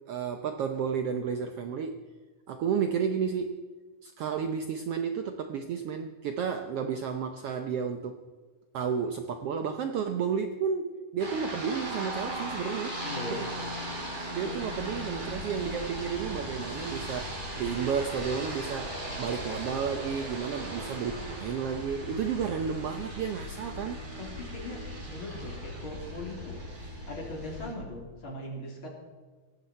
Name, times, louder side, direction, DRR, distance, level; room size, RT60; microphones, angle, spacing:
voice 1, 0.1-2.0 2.5-3.6 4.0-8.2 8.7-13.0 13.3-13.5 14.1-24.0, right 7 dB, 85° right, 7 dB, 1.3 m, -32 dB
sound 1, 11.2-27.7, right 1 dB, 15° right, 3.6 m, -39 dB
voice 2, 13.0-13.4 14.4-14.5 24.2-24.8 25.0-28.9, left 1 dB, 40° left, -1 dB, 4.0 m, -40 dB
sound 2, 14.5-27.9, left 2 dB, 90° left, 4.8 m, -44 dB
18.5 x 15.5 x 4.4 m, 1.4 s
omnidirectional pair, 3.8 m